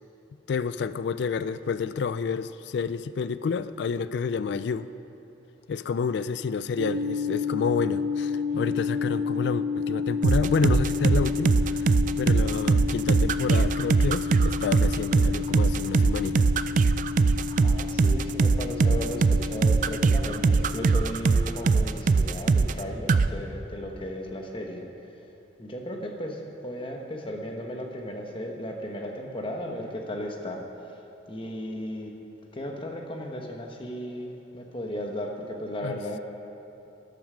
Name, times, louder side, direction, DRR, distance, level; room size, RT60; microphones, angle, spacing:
voice 1, 0.5-4.9 5.7-11.9 12.2-16.5 35.8-36.0, left 5 dB, 60° left, 14 dB, 0.3 m, -29 dB
sound 1, 6.8-20.9, left 5 dB, 80° right, 0.7 m, -31 dB
sound 2, 10.2-22.8 23.1-23.3, right 4 dB, 45° right, 0.3 m, -21 dB
voice 2, 17.5-25.1 25.6-32.2 32.5-36.2, equal, 30° left, 2 dB, 1.2 m, -35 dB
13.5 x 10.5 x 5.0 m, 2.9 s
head